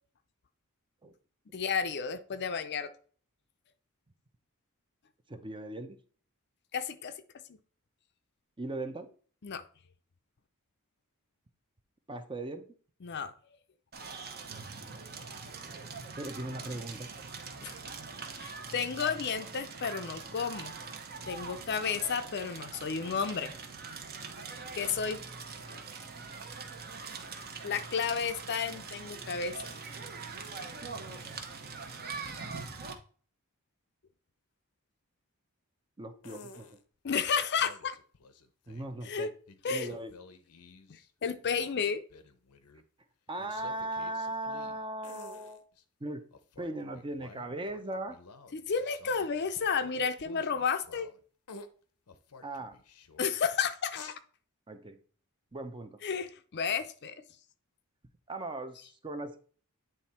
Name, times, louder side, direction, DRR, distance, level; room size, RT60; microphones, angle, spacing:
voice 1, 1.5-2.9 6.7-7.1 7.5-7.6 9.4-9.6 13.0-13.3 17.6-17.7 18.4-20.7 21.3-23.5 24.7-25.2 25.7-25.8 27.6-29.8 32.3-32.4 37.0-38.0 39.0-39.3 39.6-39.9 40.9-42.0 48.5-51.1 53.2-54.2 56.0-57.2, left 6 dB, 50° left, 10 dB, 0.5 m, -32 dB
voice 2, 5.3-6.0 8.6-9.1 12.1-12.7 16.2-17.1 36.0-36.7 38.7-39.3 39.7-40.1 43.3-45.6 46.0-46.2 46.6-48.2 52.4-52.8 54.7-55.0 55.5-55.9 58.3-59.4, right 1 dB, 20° right, 8 dB, 0.7 m, -38 dB
Crackle, 13.9-32.9, right 4 dB, 45° right, 0.9 m, -43 dB
sound 1, 36.2-36.8 37.4-39.0 39.5-41.1 41.3-42.8 43.4-45.8 46.3-51.2 51.5-51.7 52.1-53.3 53.9-54.2, left 4 dB, 90° left, 0.7 m, -51 dB
9.0 x 3.5 x 4.3 m, 0.43 s
head